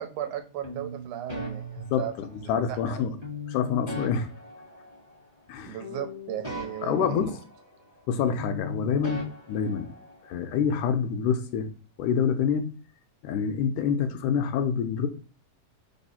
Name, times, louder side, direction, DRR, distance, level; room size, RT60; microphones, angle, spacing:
voice 1, 0.0-2.1 2.7-3.0 5.7-7.2, right 11 dB, 75° right, 7 dB, 2.0 m, -36 dB
sound 1, 0.6-2.6 3.2-5.5 5.8-8.1 8.4-10.4, left 2 dB, 30° left, 0.6 m, -39 dB
voice 2, 1.9-3.2 3.5-4.3 5.5-5.8 6.8-7.4 8.1-9.2 9.5-9.9 10.3-11.7 12.0-12.7 13.2-15.1, left 7 dB, 80° left, 8 dB, 2.1 m, -26 dB
4.3 x 4.0 x 5.5 m, 0.36 s
omnidirectional pair, 3.9 m